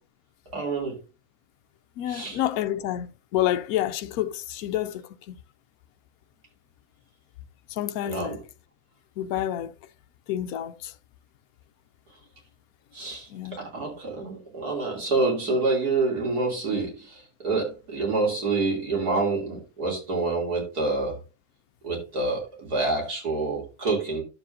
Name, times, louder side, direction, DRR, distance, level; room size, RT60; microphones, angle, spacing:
voice 1, 0.5-1.0 2.1-2.4 8.1-8.4 12.9-21.2 21.8-24.2, right 3 dB, 75° right, 3.6 m, -27 dB
voice 2, 2.0-5.4 7.7-8.4 9.2-9.7 10.3-10.9 13.3-13.6, left 12 dB, 75° left, 1.0 m, -29 dB
11.5 x 7.2 x 2.7 m
omnidirectional pair, 1.7 m